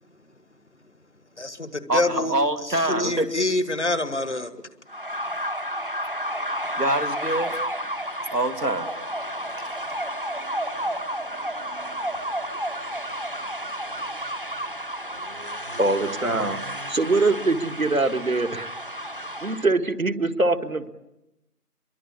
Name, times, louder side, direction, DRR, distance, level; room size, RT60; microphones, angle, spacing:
voice 1, 1.4-2.3 2.9-4.5, left 2 dB, 45° left, 13 dB, 1.5 m, -26 dB
voice 2, 1.9-3.3 6.8-7.5 8.3-8.9 9.6-9.7, right 1 dB, 90° right, 8 dB, 2.4 m, -25 dB
sound 1, 4.9-19.7, equal, 35° right, 1.2 m, -31 dB
voice 3, 15.8-16.6 16.9-18.7 19.4-20.9, right 3 dB, 60° right, 11 dB, 1.8 m, -23 dB
25.0 x 23.5 x 8.7 m, 0.94 s
figure-of-eight pair, 170°, 47 cm